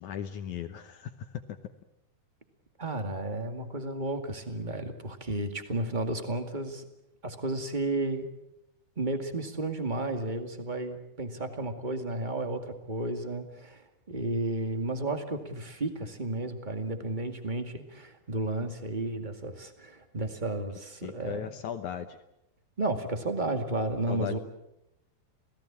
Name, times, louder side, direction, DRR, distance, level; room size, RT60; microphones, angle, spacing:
voice 1, 0.0-1.6 21.0-22.2 24.1-24.4, left 9 dB, 70° left, 9 dB, 1.9 m, -37 dB
voice 2, 2.8-6.9 7.2-8.3 9.0-21.5 22.8-24.4, right 2 dB, 25° right, 6 dB, 1.0 m, -33 dB
28.0 x 18.0 x 8.8 m, 0.87 s
omnidirectional pair, 4.5 m